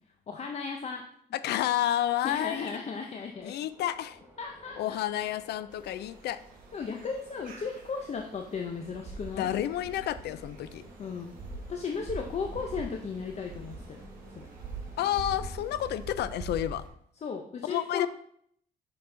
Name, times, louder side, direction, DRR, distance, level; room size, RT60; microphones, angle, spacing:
voice 1, 0.3-1.0 2.2-3.6 4.4-4.8 6.7-9.5 11.0-11.3 11.7-14.1 14.3-14.5 17.2-18.1, left 5 dB, 40° left, 3 dB, 0.6 m, -35 dB
voice 2, 1.3-2.8 3.4-4.2 4.8-6.4 9.4-10.8 15.0-16.8 17.7-18.1, left 12 dB, 90° left, 14 dB, 0.4 m, -30 dB
sound 1, 3.1-16.0, right 1 dB, 15° right, 2.0 m, -53 dB
sound 2, 5.7-16.9, right 3 dB, 55° right, 1.6 m, -44 dB
5.8 x 5.6 x 3.8 m, 0.66 s
cardioid pair, 115°, 17 cm